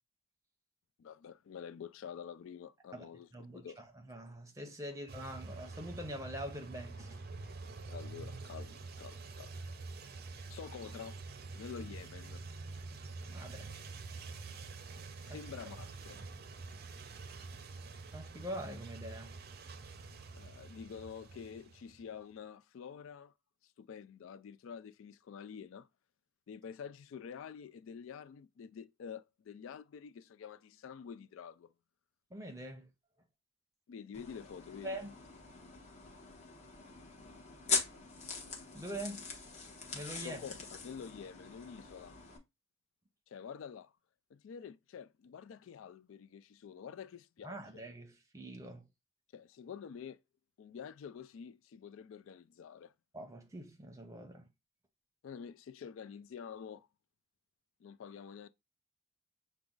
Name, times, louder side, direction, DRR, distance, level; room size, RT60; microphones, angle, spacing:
voice 1, 1.0-3.8 7.9-9.5 10.5-11.2 11.5-12.4 15.2-16.2 20.3-23.3 23.6-25.9 26.5-31.7 33.9-35.0 40.2-42.2 43.3-43.9 44.3-47.8 49.3-50.2 50.6-52.9 55.2-56.9 57.8-58.5, left 7 dB, 65° left, 0.3 m, -48 dB
voice 2, 2.9-7.2 12.9-13.0 13.3-13.7 15.3-15.4 16.1-16.2 18.1-19.4 32.3-32.9 34.8-35.2 38.7-39.2 39.9-40.4 47.4-48.9 53.1-54.5, right 1 dB, 15° right, 0.8 m, -44 dB
sound 1, 5.1-22.1, right 3 dB, 45° right, 0.5 m, -47 dB
sound 2, 34.1-42.4, left 5 dB, 35° left, 1.1 m, -41 dB
5.9 x 2.3 x 3.8 m
head